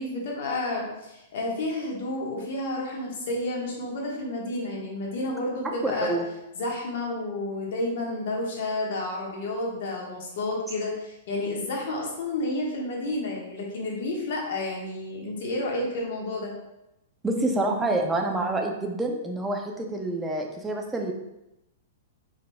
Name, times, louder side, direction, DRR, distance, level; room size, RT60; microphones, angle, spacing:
voice 1, 0.0-6.1 6.6-16.5, left 2 dB, 60° left, -2 dB, 1.2 m, -30 dB
voice 2, 5.8-6.3 17.2-21.1, right 2 dB, 5° right, 1 dB, 0.4 m, -27 dB
4.8 x 4.0 x 2.2 m, 0.91 s
hypercardioid pair, 160°, 0 cm